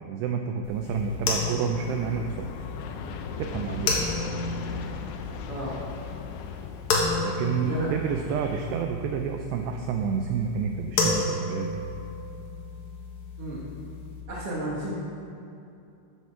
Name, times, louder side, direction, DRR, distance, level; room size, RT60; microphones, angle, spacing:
voice 1, 0.0-2.5 3.4-3.9 7.2-11.8, right 6 dB, 85° right, 4 dB, 2.4 m, -29 dB
sound 1, 0.6-14.2, left 3 dB, 60° left, 2.9 m, -32 dB
Aircraft, 0.8-8.8, left 5 dB, 80° left, 2.4 m, -39 dB
voice 2, 7.6-7.9 13.4-13.6 14.3-14.9, right 1 dB, 65° right, -6 dB, 1.4 m, -32 dB
13.5 x 8.3 x 4.8 m, 2.7 s
omnidirectional pair, 5.4 m